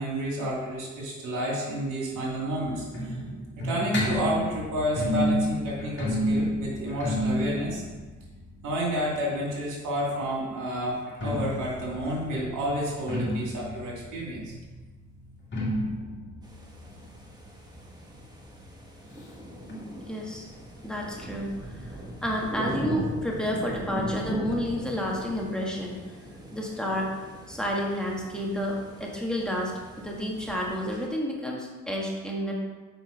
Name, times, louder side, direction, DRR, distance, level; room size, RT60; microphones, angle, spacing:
voice 1, 0.0-3.2 3.6-7.8 8.6-15.0, equal, 90° right, -3 dB, 2.7 m, -30 dB
sound 1, 2.1-9.8 10.9-18.3 18.6-18.7 18.9-19.0 19.7-19.8, equal, 40° left, 2.3 m, -31 dB
sound 2, 16.4-31.1, right 1 dB, 15° right, 1.6 m, -39 dB
voice 2, 20.0-20.5 20.8-21.9 22.2-26.0 26.5-27.1 27.5-32.5, equal, 5° left, -2 dB, 1.7 m, -30 dB
7.0 x 5.3 x 5.2 m, 1.3 s
cardioid pair, 90°, 30 cm